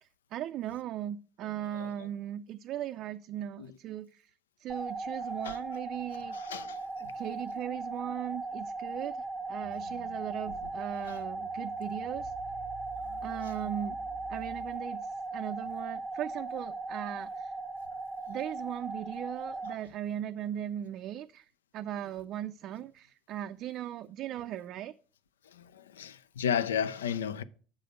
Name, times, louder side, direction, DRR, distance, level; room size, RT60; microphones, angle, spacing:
voice 1, 0.0-4.3 4.6-6.4 7.0-12.3 13.2-14.0 14.3-17.5 18.3-21.5 21.7-24.9, right 11 dB, 55° right, 0.4 m, -38 dB
sound 1, 4.7-19.7, right 2 dB, 25° right, 0.7 m, -38 dB
voice 2, 6.3-6.8 7.0-7.1 11.0-11.2 13.0-13.5 25.5-27.4, left 8 dB, 85° left, 0.4 m, -34 dB
sound 2, 9.6-15.0, right 5 dB, 70° left, 1.6 m, -52 dB
6.7 x 5.0 x 6.3 m
hypercardioid pair, 75°, 0 cm